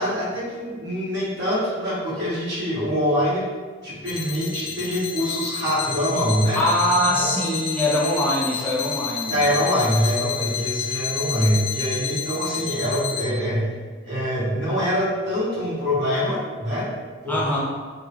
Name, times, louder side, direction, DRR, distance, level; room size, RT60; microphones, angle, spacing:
voice 1, 0.0-3.4 3.8-6.6 7.0-7.3 9.3-13.7 14.0-16.9 17.2-17.4, equal, 55° right, -10 dB, 1.4 m, -24 dB
sound 1, 4.1-13.2, left 9 dB, 65° left, 0.5 m, -29 dB
voice 2, 6.5-9.3 17.3-17.6, left 1 dB, 10° left, -5 dB, 0.5 m, -22 dB
3.6 x 2.1 x 2.9 m, 1.5 s
head